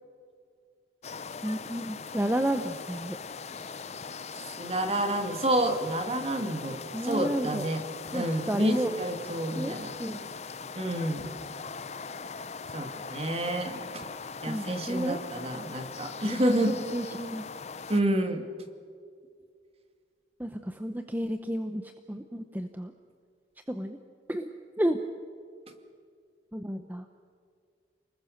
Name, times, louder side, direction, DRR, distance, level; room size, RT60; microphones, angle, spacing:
sound 1, 1.0-18.0, left 5 dB, 35° left, 0.7 m, -41 dB
voice 1, 1.4-3.2 6.9-7.6 8.1-8.9 9.5-9.7 10.0-10.3 14.5-15.2 16.2-17.4 20.4-21.8 22.1-22.9 23.7-24.0 24.3-24.5 24.8-25.0 26.5-27.0, right 1 dB, 10° right, 7 dB, 0.8 m, -31 dB
voice 2, 4.6-7.8 8.1-10.0 10.8-11.3 12.7-14.0 14.4-16.8 17.9-18.4, right 1 dB, 35° right, 6 dB, 2.2 m, -29 dB
29.5 x 20.5 x 6.6 m, 2.2 s
head